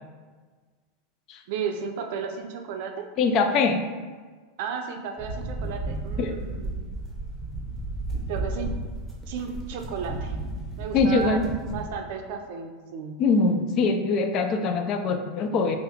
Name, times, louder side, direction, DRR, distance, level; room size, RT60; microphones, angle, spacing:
voice 1, 1.5-3.1 4.6-6.8 8.3-8.7 9.3-10.4 10.8-11.4 11.7-13.2, right 6 dB, 65° right, 4 dB, 0.4 m, -33 dB
voice 2, 3.2-3.8 6.2-6.3 10.9-11.5 13.2-15.8, left 4 dB, 45° left, 6 dB, 0.3 m, -23 dB
sound 1, 5.2-11.8, right 2 dB, 10° right, 0.8 m, -33 dB
2.7 x 2.4 x 3.5 m, 1.4 s
hypercardioid pair, 110°, 0 cm